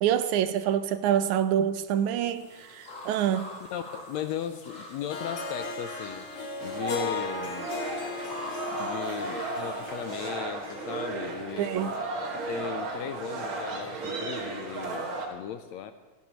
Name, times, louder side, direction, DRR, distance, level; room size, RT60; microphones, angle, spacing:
voice 1, 0.0-3.5 11.6-11.9, right 10 dB, 80° right, 1.9 m, -26 dB
sound 1, 2.3-10.2, left 2 dB, 30° left, 3.4 m, -45 dB
voice 2, 3.7-6.3 6.6-7.8 8.7-11.9 12.3-15.9, left 9 dB, 80° left, 1.7 m, -37 dB
Harp, 5.1-12.3, left 3 dB, 65° left, 2.6 m, -37 dB
sound 2, 6.6-15.3, right 3 dB, 45° right, 2.3 m, -35 dB
28.5 x 11.5 x 3.1 m
omnidirectional pair, 3.6 m